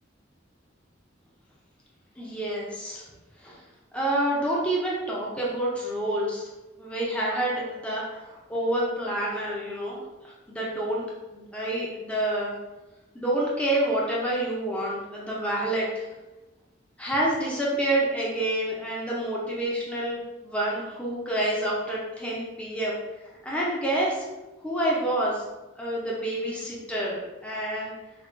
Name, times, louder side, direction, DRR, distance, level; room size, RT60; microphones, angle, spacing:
voice 1, 2.2-3.0 3.4-3.6 3.9-6.5 6.8-11.0 11.3-12.6 13.1-16.1 17.0-23.0 23.4-24.2 24.6-25.4 25.8-27.9, right 1 dB, 5° left, -5 dB, 0.6 m, -28 dB
5.4 x 2.3 x 2.5 m, 1.1 s
head